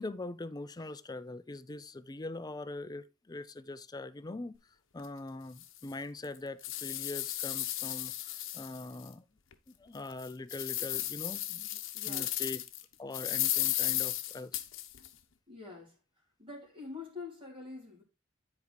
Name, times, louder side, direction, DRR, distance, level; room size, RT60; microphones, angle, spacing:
voice 1, 0.0-4.6 4.9-9.2 9.7-11.7 12.1-12.6 13.0-14.6, left 2 dB, 20° left, 0.5 m, -42 dB
sound 1, 5.0-5.1 5.6-5.7 6.2-9.1 9.5-9.6 10.1-12.8 13.1-15.1, left 14 dB, 80° left, 0.9 m, -34 dB
voice 2, 11.9-12.5 15.5-16.0 16.4-18.0, left 4 dB, 25° right, 3.0 m, -46 dB
9.9 x 4.6 x 3.9 m
head